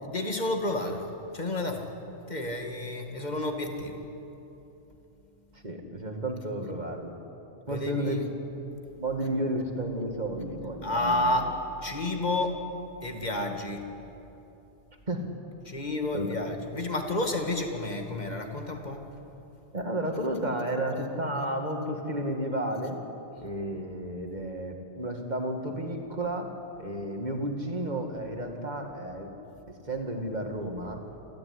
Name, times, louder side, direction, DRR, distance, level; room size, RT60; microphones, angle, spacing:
voice 1, 0.0-1.9 2.3-4.1 7.7-8.2 10.8-12.6 13.0-13.9 15.6-19.0, left 2 dB, 40° left, 4 dB, 2.3 m, -30 dB
voice 2, 5.5-7.2 7.7-8.3 9.0-11.4 15.1-15.3 16.1-16.3 19.7-23.0 23.4-29.3 29.7-31.0, right 1 dB, 40° right, 3 dB, 2.4 m, -32 dB
29.0 x 13.5 x 9.7 m, 2.9 s
omnidirectional pair, 1.2 m